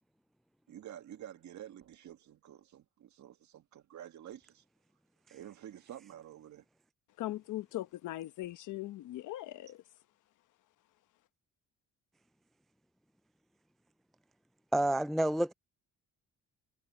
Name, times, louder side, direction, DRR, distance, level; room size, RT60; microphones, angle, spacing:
voice 1, 0.7-4.6 5.3-6.7, right 11 dB, 70° right, 1.9 m, -49 dB
voice 2, 7.2-9.8, left 15 dB, 80° left, 1.1 m, -40 dB
voice 3, 14.7-15.5, right 1 dB, ahead, 0.3 m, -28 dB
cardioid pair, 90°, 30 cm